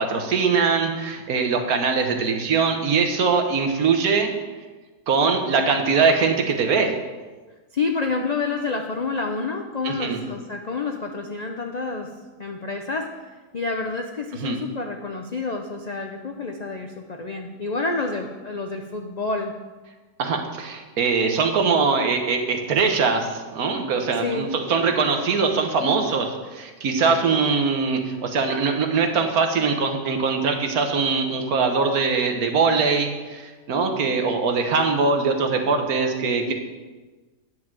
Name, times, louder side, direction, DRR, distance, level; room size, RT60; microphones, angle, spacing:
voice 1, 0.0-4.3 5.1-6.9 9.8-10.2 14.4-14.6 20.2-36.5, right 5 dB, 70° right, 5 dB, 1.5 m, -22 dB
voice 2, 7.7-12.1 12.4-19.5 24.2-24.5 36.5-36.6, left 4 dB, 70° left, 4 dB, 0.4 m, -28 dB
10.5 x 4.8 x 7.4 m, 1.3 s
omnidirectional pair, 1.6 m